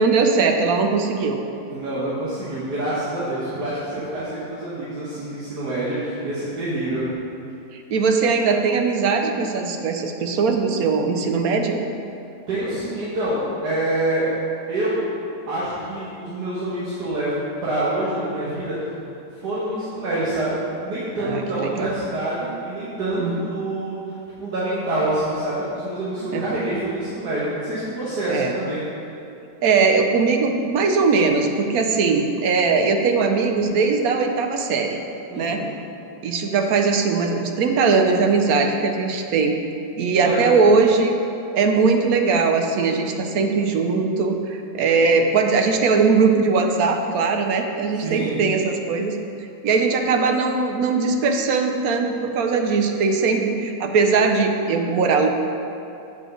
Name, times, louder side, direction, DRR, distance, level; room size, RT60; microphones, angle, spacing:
voice 1, 0.0-1.4 7.7-11.8 21.2-21.9 23.2-23.5 26.2-26.4 28.3-28.5 29.6-35.0 35.3-35.6 36.2-39.6 40.0-41.2 41.5-49.2 49.6-55.3, right 4 dB, 70° right, 4 dB, 1.1 m, -20 dB
voice 2, 1.7-7.1 12.5-14.3 14.7-15.0 15.5-18.7 19.3-24.1 24.4-28.9 35.3-35.7 40.2-40.4 48.0-48.4, right 1 dB, 90° right, -9 dB, 1.8 m, -26 dB
7.3 x 4.5 x 6.5 m, 2.7 s
omnidirectional pair, 1.7 m